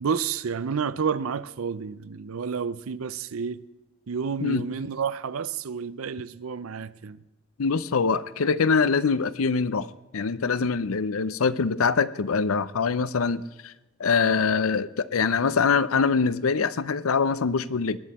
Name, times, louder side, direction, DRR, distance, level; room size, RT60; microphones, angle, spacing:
voice 1, 0.0-3.6 4.1-7.2, right 6 dB, 80° right, 0.5 m, -30 dB
voice 2, 7.6-9.9 10.1-13.7 14.0-18.0, left 5 dB, 85° left, 0.6 m, -24 dB
19.5 x 11.0 x 4.2 m
head